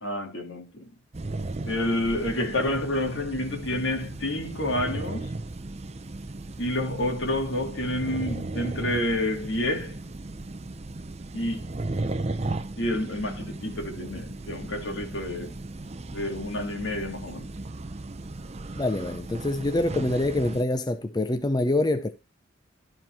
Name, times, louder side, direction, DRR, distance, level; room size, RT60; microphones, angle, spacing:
voice 1, 0.0-0.9 1.7-5.3 6.6-10.0 11.3-11.6 12.8-15.5 16.1-17.5, left 1 dB, 70° left, 2.4 m, -29 dB
sound 1, 1.1-20.6, right 2 dB, 35° right, 0.6 m, -36 dB
voice 2, 18.8-22.1, left 2 dB, 20° left, 0.5 m, -25 dB
12.5 x 4.4 x 4.5 m
head